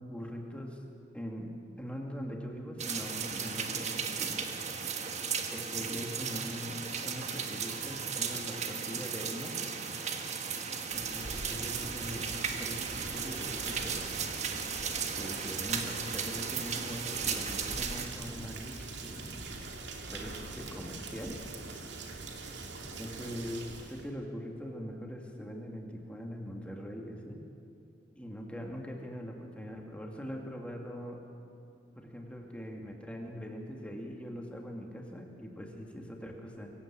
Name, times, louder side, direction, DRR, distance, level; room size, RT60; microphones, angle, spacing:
voice 1, 0.1-0.8 1.1-4.3 5.5-9.6 10.9-14.0 15.1-19.4 20.1-21.4 23.0-27.4 28.2-31.2 32.0-36.7, equal, 5° left, 1 dB, 2.4 m, -42 dB
sound 1, 2.8-18.1, right 6 dB, 40° right, 1.5 m, -36 dB
Rain, 10.9-24.1, right 3 dB, 70° right, 2.5 m, -43 dB
24.0 x 15.0 x 8.4 m, 2.6 s
head